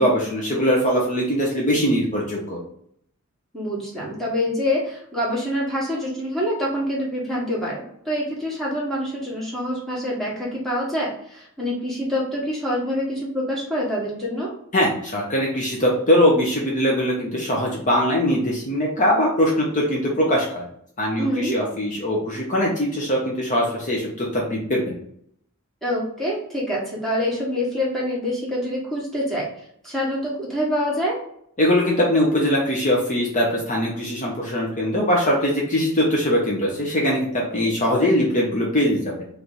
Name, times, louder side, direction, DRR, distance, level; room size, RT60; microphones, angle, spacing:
voice 1, 0.0-2.6 14.7-20.6 21.0-25.0 31.6-39.3, equal, 35° left, -3 dB, 0.9 m, -21 dB
voice 2, 3.5-14.5 21.2-21.6 25.8-29.5 29.8-31.2, equal, ahead, -6 dB, 1.5 m, -26 dB
3.3 x 3.1 x 3.9 m, 0.69 s
head